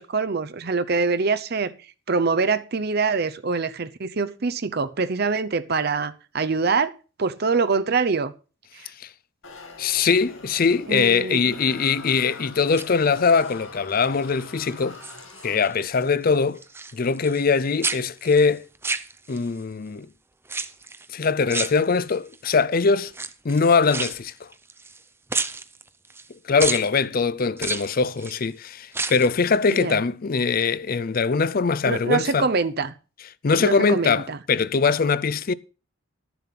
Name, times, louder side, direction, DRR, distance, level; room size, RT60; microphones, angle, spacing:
voice 1, 0.0-1.7 2.1-6.9 7.2-8.3 8.7-8.9 10.9-11.5 29.7-30.0 31.9-32.9 33.6-34.4, right 4 dB, 50° right, 0.7 m, -24 dB
sound 1, 9.4-16.1, left 3 dB, 80° left, 2.3 m, -43 dB
voice 2, 9.8-15.0 15.4-16.6 16.9-18.6 19.3-20.1 21.1-23.1 23.4-24.5 26.4-32.5 33.4-35.5, left 5 dB, 45° left, 0.5 m, -22 dB
sound 2, 12.6-13.5 14.0-14.4 14.7-17.6 17.8-19.6 20.5-21.1 21.5-22.4 23.1-25.0 25.3-26.3 26.6-26.9 27.6-28.4 28.8-29.4 29.7-29.8, right 4 dB, 10° right, 0.6 m, -31 dB
12.0 x 7.0 x 5.9 m
head